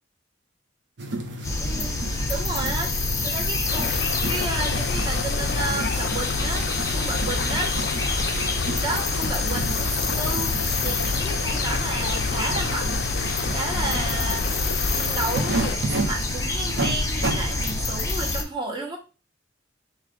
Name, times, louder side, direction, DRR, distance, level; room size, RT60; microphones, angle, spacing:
sound 1, 1.0-18.0, right 1 dB, 70° right, 0.8 m, -33 dB
sound 2, 1.4-18.4, left 2 dB, 15° left, 0.7 m, -27 dB
voice 1, 1.6-7.7 8.8-13.0 13.5-14.5 14.9-19.0, right 2 dB, 25° right, 0 dB, 1.1 m, -32 dB
sound 3, 3.7-15.8, left 6 dB, 60° left, 0.3 m, -30 dB
4.8 x 2.5 x 3.8 m, 0.32 s
head